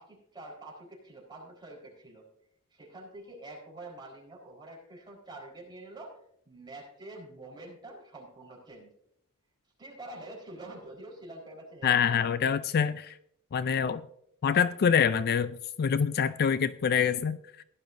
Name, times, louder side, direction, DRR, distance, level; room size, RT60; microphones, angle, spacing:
voice 1, 0.0-2.3 2.7-6.2 6.5-8.9 9.8-12.3, right 2 dB, 20° right, -2 dB, 4.2 m, -46 dB
voice 2, 11.8-13.2 13.5-14.0 14.4-17.6, left 7 dB, 45° left, 14 dB, 0.4 m, -26 dB
17.0 x 11.0 x 2.6 m, 0.71 s
head